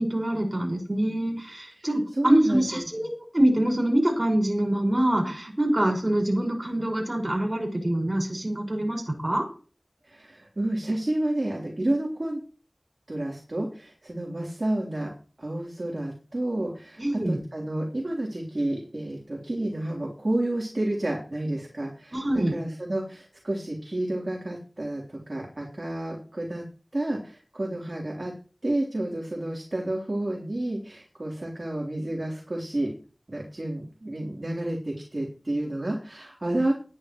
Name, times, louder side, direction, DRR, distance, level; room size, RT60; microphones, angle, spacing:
voice 1, 0.0-9.5 17.0-17.4 22.1-22.5, right 1 dB, 45° right, 0 dB, 5.3 m, -25 dB
voice 2, 1.8-2.8 10.0-12.4 13.1-15.1 15.4-26.6 26.9-28.3 28.6-32.9 33.3-36.7, right 1 dB, 70° right, -2 dB, 3.5 m, -30 dB
20.0 x 10.5 x 3.1 m, 0.39 s
wide cardioid pair, 40°, 0 cm